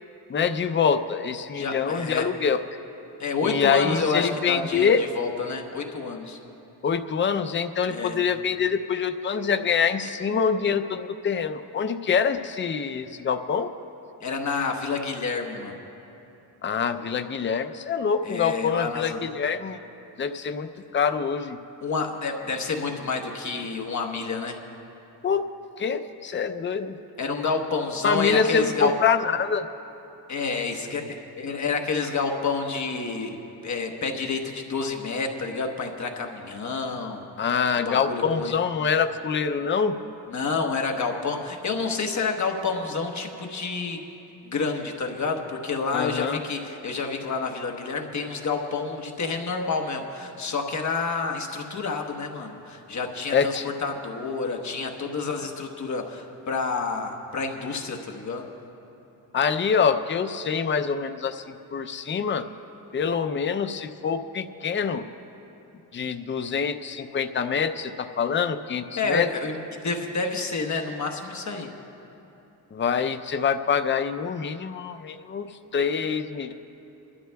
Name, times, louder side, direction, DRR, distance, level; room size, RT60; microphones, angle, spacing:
voice 1, 0.3-2.6 3.4-5.0 6.8-13.7 16.6-19.8 20.2-21.6 25.2-25.5 25.8-27.0 28.0-29.6 37.4-39.9 45.9-46.4 53.3-53.7 59.3-62.4 62.9-65.1 65.9-69.3 72.7-75.5 75.7-76.5, left 6 dB, 30° left, 8 dB, 0.5 m, -25 dB
voice 2, 1.5-2.3 3.2-6.4 7.9-8.2 14.2-15.8 18.2-19.2 21.8-24.6 27.2-28.9 30.3-33.4 33.6-38.5 40.3-44.0 44.4-58.5 69.0-71.7, left 4 dB, 45° left, 2 dB, 1.1 m, -29 dB
28.5 x 12.5 x 2.3 m, 3.0 s
cardioid pair, 105°, 40 cm